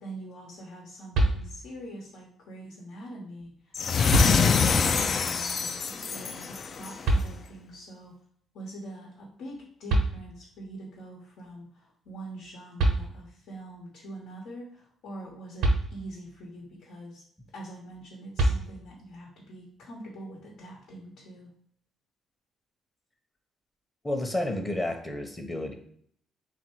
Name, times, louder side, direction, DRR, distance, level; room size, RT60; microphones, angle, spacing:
voice 1, 0.0-8.1 8.5-17.2 17.5-21.5, right 1 dB, 85° left, -2 dB, 1.1 m, -44 dB
sound 1, 1.1-1.9 3.4-3.5 4.1-4.9 7.0-7.8 9.6-9.7 9.9-10.7 12.4-12.5 12.8-13.5 15.6-16.4 18.4-19.1, right 2 dB, 90° right, 0.8 m, -27 dB
sound 2, 3.7-7.1, left 6 dB, 50° left, 0.3 m, -25 dB
voice 2, 24.0-25.7, left 1 dB, 15° left, 4 dB, 0.7 m, -31 dB
3.6 x 2.6 x 4.4 m, 0.63 s
cardioid pair, 90°, 0 cm